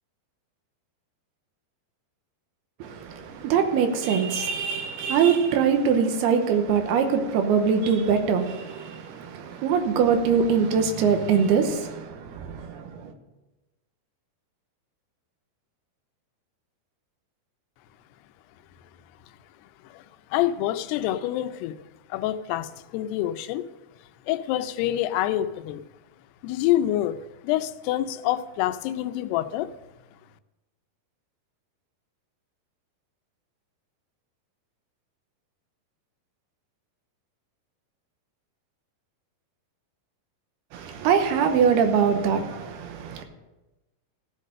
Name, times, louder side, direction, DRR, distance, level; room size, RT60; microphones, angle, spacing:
voice 1, 2.8-13.1 40.7-43.2, right 6 dB, 80° right, 2.9 m, -23 dB
voice 2, 20.3-21.8 22.1-23.6 24.3-25.8 26.4-27.2 27.4-29.7, left 13 dB, 85° left, 2.7 m, -26 dB
15.0 x 6.6 x 6.5 m
omnidirectional pair, 4.7 m